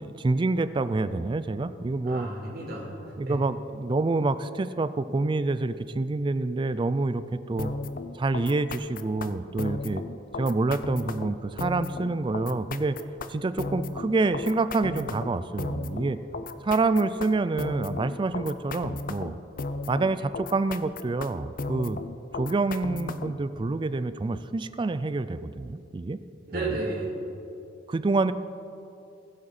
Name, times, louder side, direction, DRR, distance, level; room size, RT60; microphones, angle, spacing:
voice 1, 0.0-2.3 3.2-7.7 8.1-10.0 10.4-13.0 13.3-16.2 16.6-19.4 19.9-22.0 22.3-26.2 26.5-26.7 27.9-28.3, right 3 dB, 25° right, 13 dB, 0.3 m, -27 dB
voice 2, 2.1-3.4 26.5-27.1, right 2 dB, 55° right, -4 dB, 3.0 m, -33 dB
sound 1, 7.6-23.4, left 3 dB, 45° left, 0.5 m, -35 dB
19.5 x 7.8 x 4.2 m, 2.7 s
head